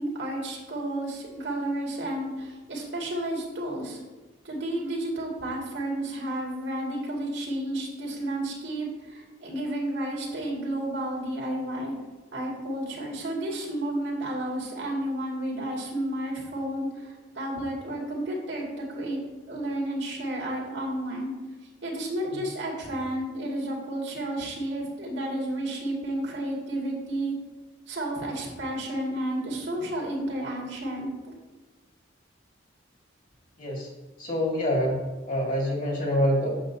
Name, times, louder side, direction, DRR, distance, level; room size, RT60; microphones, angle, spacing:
voice 1, 0.0-4.0 4.4-11.9 12.3-19.2 19.5-21.3 21.8-27.3 27.9-31.3, right 1 dB, 85° right, -2 dB, 2.3 m, -31 dB
voice 2, 33.6-33.9 34.2-35.0 35.3-36.5, equal, 45° left, -1 dB, 2.0 m, -26 dB
8.3 x 7.4 x 2.8 m, 1.2 s
head